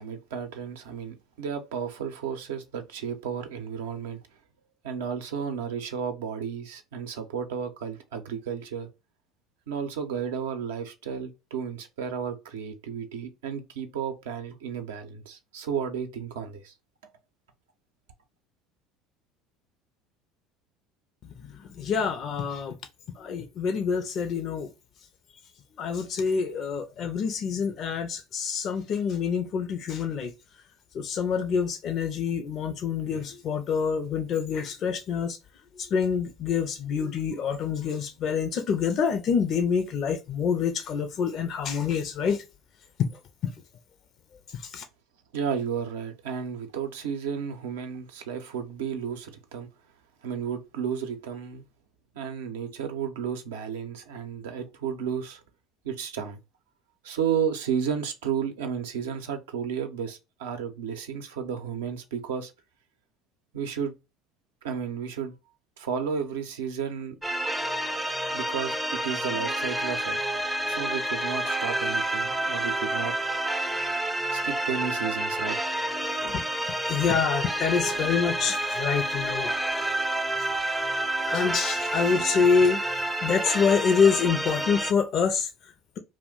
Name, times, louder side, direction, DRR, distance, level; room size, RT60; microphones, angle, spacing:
voice 1, 0.0-4.2 4.8-8.9 9.7-16.7 45.3-49.7 50.2-51.7 52.1-55.4 55.8-56.4 57.0-62.5 63.5-64.0 64.6-65.3 65.8-67.2 68.3-70.2 70.6-73.1 74.3-75.6, right 7 dB, 80° right, 0.5 m, -33 dB
voice 2, 21.2-22.8 23.2-24.7 25.8-30.3 30.9-35.4 35.8-42.4 43.0-43.1 43.4-43.5 44.5-44.8 76.2-76.4 76.9-79.5 81.2-82.8 83.2-86.0, left 6 dB, 50° left, 0.4 m, -26 dB
sound 1, 67.2-84.9, right 1 dB, 5° right, 0.4 m, -29 dB
2.4 x 2.1 x 3.6 m
hypercardioid pair, 75°, 0 cm